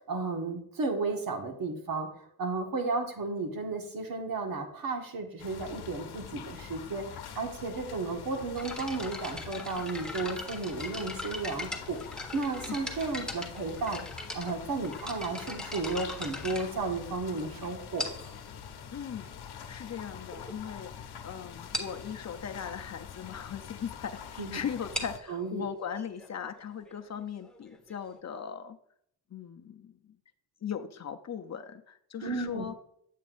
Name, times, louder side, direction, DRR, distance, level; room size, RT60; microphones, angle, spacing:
voice 1, 0.0-12.0 12.3-18.0 24.4-24.6 25.3-25.7 32.2-32.7, right 3 dB, 60° right, 3 dB, 1.7 m, -33 dB
sound 1, 5.4-25.2, left 8 dB, 80° left, 0.9 m, -45 dB
sound 2, 8.6-17.4 18.0-18.4 19.2-19.3 20.0-20.1 20.3-20.5 20.8-21.0 21.2-21.3 21.7-22.0 24.7-28.2, left 1 dB, ahead, 1.4 m, -40 dB
voice 2, 18.9-19.3 19.7-28.8 29.3-30.0 30.6-32.8, left 7 dB, 45° left, 6 dB, 0.7 m, -39 dB
8.9 x 8.4 x 2.6 m, 0.68 s
wide cardioid pair, 125°, 39 cm